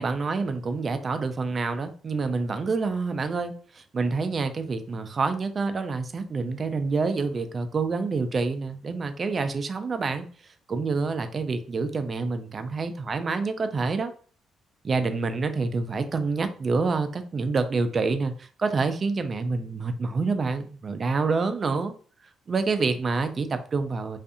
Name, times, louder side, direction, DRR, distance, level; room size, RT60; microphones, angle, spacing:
voice 1, 0.0-10.3 10.7-14.1 14.8-21.9 22.5-24.2, right 4 dB, 40° right, 9 dB, 0.3 m, -27 dB
2.4 x 2.4 x 2.6 m, 0.43 s
cardioid pair, 90°, 0 cm